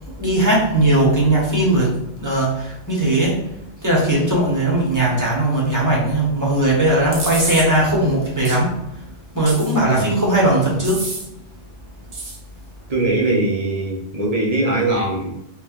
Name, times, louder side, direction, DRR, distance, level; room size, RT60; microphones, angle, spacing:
voice 1, 0.2-1.9 2.2-3.4 3.8-8.7 9.3-11.0, right 1 dB, 15° right, -5 dB, 0.9 m, -18 dB
sound 1, 7.1-7.7 8.4-8.6 9.5-10.0 10.8-11.3 12.1-12.4, right 3 dB, 70° right, 1.1 m, -28 dB
voice 2, 12.9-15.3, right 2 dB, 40° right, -2 dB, 0.7 m, -21 dB
3.3 x 3.2 x 2.4 m, 0.85 s
omnidirectional pair, 1.2 m